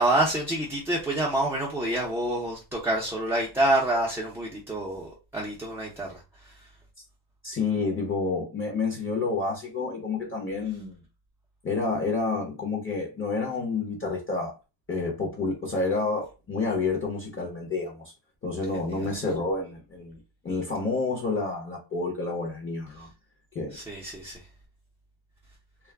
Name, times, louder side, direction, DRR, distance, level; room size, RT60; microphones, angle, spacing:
voice 1, 0.0-6.7 18.9-19.1 23.7-24.5, right 1 dB, 5° right, 0.5 m, -27 dB
voice 2, 7.4-11.0 11.6-14.5 14.9-18.0 18.4-20.2 20.4-23.1 23.5-23.8, left 3 dB, 25° left, 0.8 m, -29 dB
2.3 x 2.0 x 3.3 m
cardioid pair, 125°, 46 cm